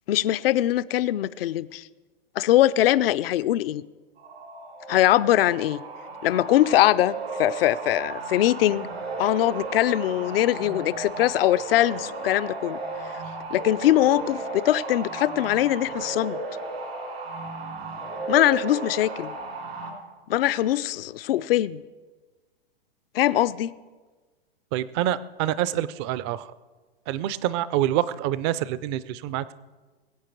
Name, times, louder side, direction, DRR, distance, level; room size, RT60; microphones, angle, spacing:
voice 1, 0.1-1.9 2.4-3.8 4.9-5.8 6.2-8.9 9.2-12.8 13.0-13.1 13.5-16.4 18.3-19.3 20.3-21.8 23.1-23.7, left 13 dB, 70° left, 15 dB, 0.5 m, -22 dB
sound 1, 4.2-19.9, right 3 dB, 85° right, 3.3 m, -35 dB
voice 2, 24.7-26.5 27.1-29.5, right 12 dB, 30° right, 18 dB, 0.4 m, -26 dB
21.0 x 8.3 x 4.5 m, 1.3 s
hypercardioid pair, 140°, 31 cm